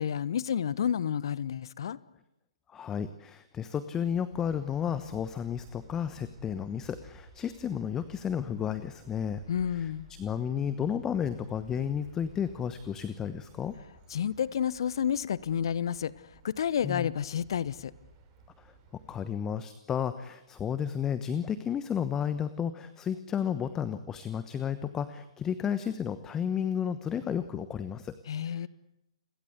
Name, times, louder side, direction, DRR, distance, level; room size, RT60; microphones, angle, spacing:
voice 1, 0.0-2.0 9.5-10.1 14.1-16.1 16.4-17.9 28.3-28.7, left 8 dB, 55° left, 19 dB, 1.0 m, -30 dB
voice 2, 2.7-9.4 9.7-9.9 10.2-13.7 16.8-17.1 18.6-28.2 28.5-28.7, left 8 dB, 15° left, 13 dB, 1.1 m, -32 dB
sound 1, 4.3-19.2, right 3 dB, 25° right, 7.2 m, -56 dB
30.0 x 22.0 x 8.2 m, 0.88 s
figure-of-eight pair, 125°, 3 cm